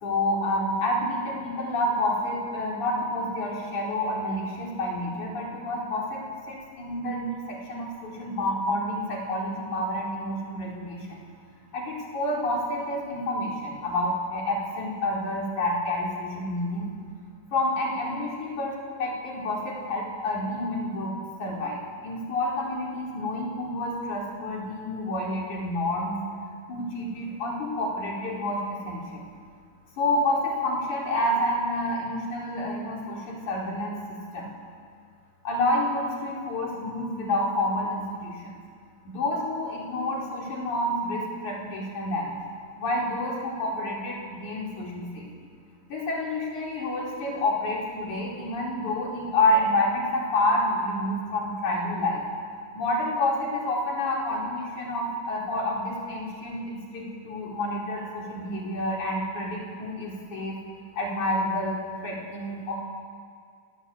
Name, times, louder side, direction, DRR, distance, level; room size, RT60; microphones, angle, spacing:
voice 1, 0.0-11.2 11.7-16.9 17.5-26.1 26.7-29.2 30.0-34.5 35.4-38.5 39.1-42.4 42.8-45.3 45.9-52.2 52.7-60.6 60.9-62.7, left 1 dB, 70° left, -2 dB, 5.9 m, -29 dB
28.5 x 19.5 x 8.6 m, 2.1 s
omnidirectional pair, 3.5 m